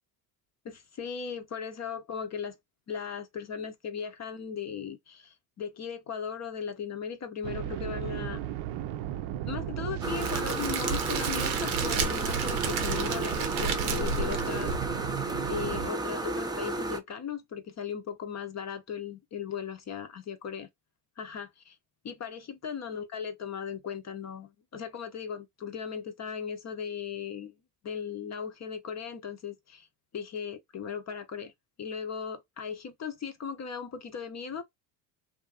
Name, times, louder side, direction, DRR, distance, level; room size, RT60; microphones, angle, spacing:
voice 1, 0.6-2.6 2.9-8.4 9.5-14.7 15.5-20.7 21.2-21.8 22.0-27.5 27.8-29.9 30.1-31.5 31.8-34.6, left 7 dB, 35° left, 0.6 m, -37 dB
sound 1, 7.4-15.9, right 12 dB, 60° right, 0.6 m, -35 dB
sound 2, 10.0-17.0, right 2 dB, 10° right, 0.5 m, -33 dB
Crackle, 10.2-15.2, right 5 dB, 85° right, 0.8 m, -32 dB
2.6 x 2.4 x 2.4 m
supercardioid pair, 75°, 50 cm